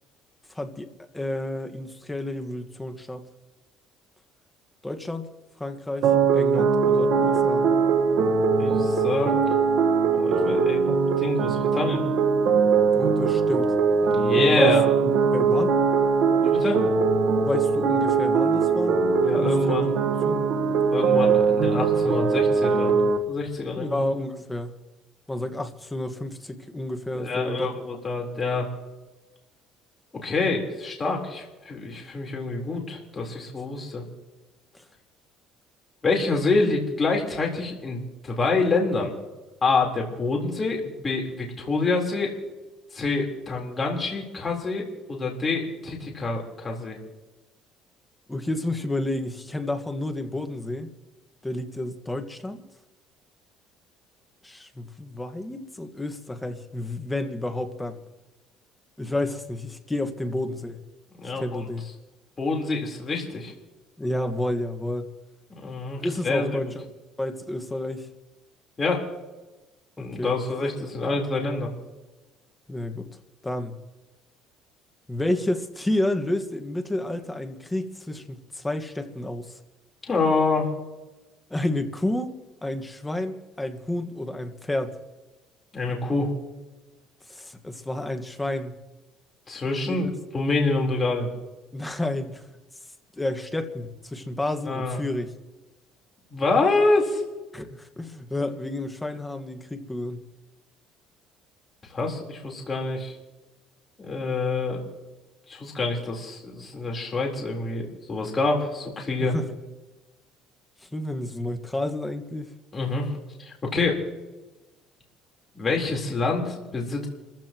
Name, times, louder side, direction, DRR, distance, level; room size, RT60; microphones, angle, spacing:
voice 1, 0.6-0.9 1.1-3.2 4.8-5.3 5.6-7.7 12.9-13.7 14.3-15.8 17.5-19.0 19.3-20.5 23.8-24.7 25.3-27.7 34.7-34.8 48.3-50.9 51.4-52.6 54.4-58.0 59.0-60.8 61.3-61.8 64.0-65.1 66.0-66.8 67.2-68.1 70.0-70.3 72.7-73.1 73.4-73.7 75.1-79.6 81.5-85.0 87.3-88.7 89.9-90.1 91.7-92.5 93.2-95.3 97.5-100.2 109.2-109.5 110.9-112.5, left 1 dB, 10° left, 6 dB, 1.6 m, -30 dB
sound 1, 6.0-23.2, right 5 dB, 65° right, 1.4 m, -21 dB
voice 2, 8.6-9.3 10.1-10.9 11.2-12.0 14.1-14.9 16.4-16.8 19.2-19.9 20.9-23.0 23.3-24.0 27.1-28.7 30.2-34.0 36.0-39.1 39.6-42.3 42.9-44.8 45.1-47.0 61.2-61.6 62.4-63.5 65.6-66.6 68.8-69.0 70.0-71.7 80.1-80.7 85.7-86.3 89.5-90.1 90.3-91.3 94.7-95.0 96.3-97.2 101.9-103.1 104.0-104.8 105.5-109.3 112.7-113.1 113.4-114.0 115.5-117.1, left 3 dB, 25° left, -1 dB, 3.9 m, -26 dB
29.5 x 15.0 x 3.0 m, 1.1 s
cardioid pair, 115°, 0 cm